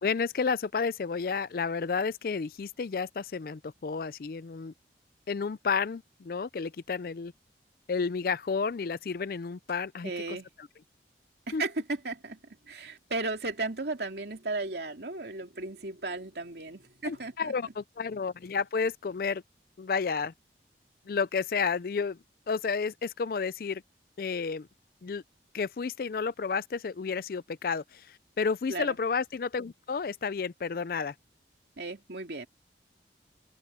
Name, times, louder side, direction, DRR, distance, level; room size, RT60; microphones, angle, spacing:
voice 1, 0.0-4.7 5.3-7.3 7.9-10.4 11.5-11.6 17.0-19.4 19.8-20.3 21.1-22.2 22.5-23.8 24.2-24.7 25.0-25.2 25.5-31.1, left 5 dB, 55° left, 0.4 m, -31 dB
voice 2, 10.0-10.5 11.5-12.4 12.7-17.5 28.7-29.0 31.8-32.5, right 3 dB, 65° right, 2.5 m, -35 dB
head